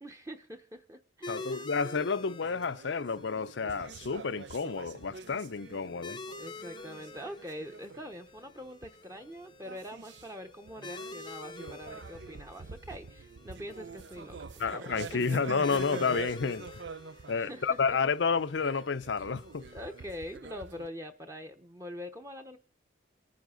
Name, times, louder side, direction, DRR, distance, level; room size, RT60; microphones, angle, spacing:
voice 1, 0.0-1.7 6.4-15.2 17.0-18.0 19.7-22.6, equal, 15° right, 0.9 m, -44 dB
sound 1, 1.2-20.4, left 3 dB, 25° left, 0.7 m, -48 dB
voice 2, 1.3-6.2 14.6-16.7 17.3-19.6, left 5 dB, 75° left, 0.6 m, -30 dB
sound 2, 2.4-8.4 8.7-9.2 9.5-20.9, right 4 dB, 75° right, 0.6 m, -46 dB
27.5 x 9.4 x 3.9 m
head